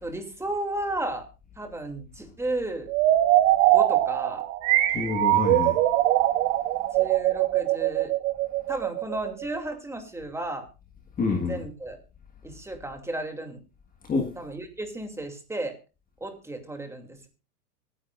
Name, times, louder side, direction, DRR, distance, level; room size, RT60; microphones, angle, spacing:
voice 1, 0.0-1.2 1.6-2.9 3.7-4.4 6.9-8.1 8.7-10.6 11.5-12.0 12.4-13.6 14.4-15.7 16.2-17.3, right 2 dB, 5° right, 2.6 m, -33 dB
sound 1, 2.9-9.6, right 14 dB, 50° right, 1.7 m, -22 dB
voice 2, 4.9-5.8 11.2-11.6 14.1-14.3, left 4 dB, 20° left, 1.6 m, -27 dB
25.0 x 10.0 x 2.5 m
hypercardioid pair, 110°, 47 cm